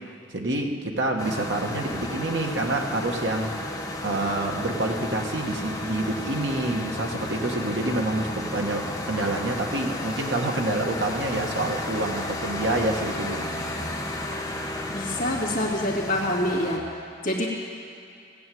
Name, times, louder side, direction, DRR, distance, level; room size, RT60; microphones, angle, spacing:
voice 1, 0.0-3.5 4.0-13.7, right 2 dB, 75° right, 2 dB, 1.6 m, -27 dB
sound 1, 1.2-16.8, left 1 dB, 20° left, 1.3 m, -33 dB
voice 2, 14.9-16.8 17.2-17.5, left 1 dB, 45° left, -4 dB, 2.3 m, -26 dB
18.0 x 8.9 x 7.9 m, 2.4 s
head